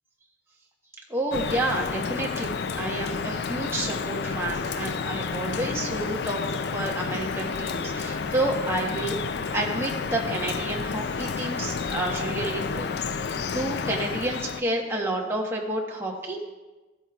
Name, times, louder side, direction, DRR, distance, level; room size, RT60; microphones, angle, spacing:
voice 1, 1.1-16.4, right 1 dB, 15° right, -2 dB, 1.3 m, -30 dB
Drip, 1.3-14.6, left 5 dB, 65° left, 0.4 m, -30 dB
14.5 x 8.4 x 2.4 m, 1.2 s
head